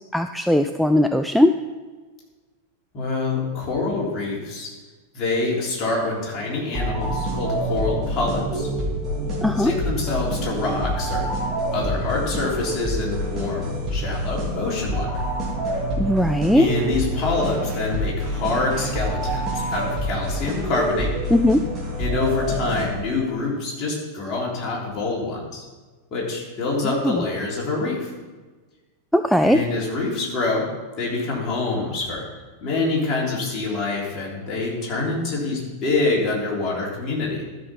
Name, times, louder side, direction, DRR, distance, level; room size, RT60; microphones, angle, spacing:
voice 1, 0.1-1.5 9.4-9.7 16.0-16.7 21.3-21.6 26.8-27.2 29.1-29.6, left 1 dB, ahead, 8 dB, 0.4 m, -18 dB
voice 2, 2.9-4.7 5.1-8.7 9.6-11.3 11.7-15.2 16.5-21.1 22.0-25.6 26.1-28.1 29.4-30.7 31.0-32.2 32.6-37.4, left 3 dB, 30° left, -4 dB, 3.5 m, -26 dB
sound 1, 6.7-23.3, right 1 dB, 30° right, 3.0 m, -27 dB
12.5 x 5.5 x 5.8 m, 1.3 s
figure-of-eight pair, 90°, 0 cm